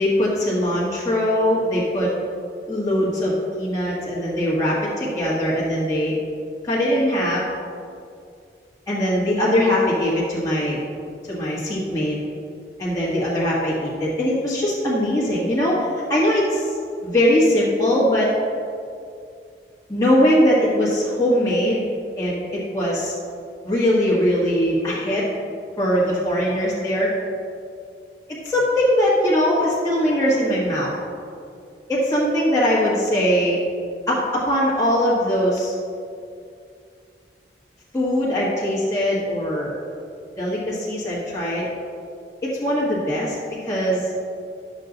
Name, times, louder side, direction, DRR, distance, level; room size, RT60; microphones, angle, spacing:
voice 1, 0.0-2.1 2.7-6.1 6.6-7.4 8.9-10.8 11.3-12.2 12.8-16.7 17.0-18.3 19.9-21.8 22.2-23.1 23.6-25.3 25.8-27.1 28.4-31.0 31.9-33.6 34.1-35.7 37.9-39.7 40.4-41.7 42.4-43.3 43.6-44.1, equal, 20° left, -8 dB, 1.7 m, -21 dB
11.5 x 6.6 x 3.9 m, 2.4 s
head